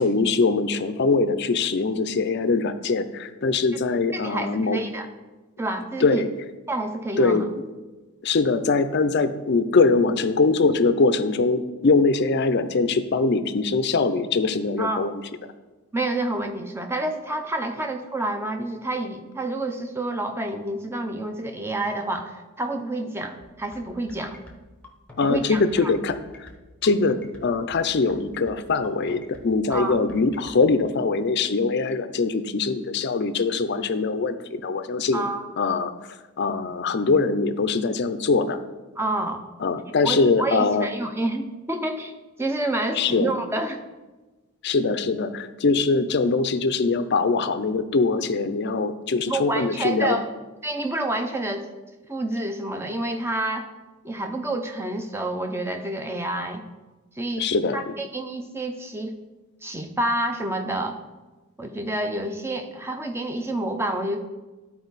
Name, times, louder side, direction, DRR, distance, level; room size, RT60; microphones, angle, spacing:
voice 1, 0.0-4.8 6.0-6.3 7.2-7.5 8.2-15.2 25.2-26.5 26.8-35.3 35.6-35.9 36.4-38.6 39.6-40.9 42.9-43.3 44.6-50.2 57.4-57.9, left 4 dB, 50° left, 11 dB, 0.5 m, -22 dB
voice 2, 4.1-5.1 5.6-6.2 6.7-7.4 14.8-15.1 15.9-24.4 25.2-25.9 29.7-30.0 35.1-35.5 39.0-39.4 40.0-42.1 42.4-43.8 49.3-50.3 50.6-51.7 52.1-53.7 54.0-56.6 57.2-57.5 57.7-59.2 59.6-61.0 61.6-64.2, right 1 dB, 10° right, 6 dB, 0.6 m, -28 dB
sound 1, 23.4-30.6, left 1 dB, 5° left, 0.9 m, -47 dB
12.5 x 4.5 x 4.0 m, 1.2 s
head